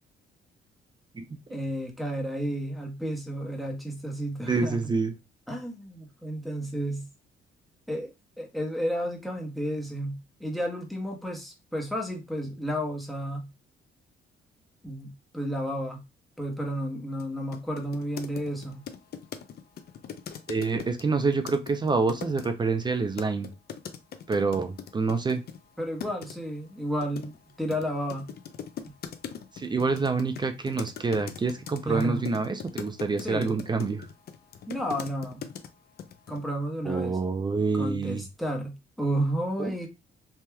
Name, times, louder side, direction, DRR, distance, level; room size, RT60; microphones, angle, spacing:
voice 1, 1.5-4.8 5.5-7.1 7.9-8.1 8.4-13.5 14.8-16.0 16.4-18.8 25.8-27.3 27.6-28.3 31.8-32.2 33.2-33.5 34.7-35.5 36.3-37.2 37.7-39.9, equal, ahead, 1.0 m, -32 dB
voice 2, 4.5-5.1 20.5-23.5 24.3-25.4 29.5-34.1 36.9-38.2 39.6-39.7, right 4 dB, 20° right, 0.4 m, -27 dB
sound 1, 17.2-17.3 17.5-22.5 23.2-25.6 26.0-26.4 27.0-35.7 36.0-36.4, left 8 dB, 55° left, 0.5 m, -40 dB
3.3 x 2.8 x 2.2 m
cardioid pair, 90°, 20 cm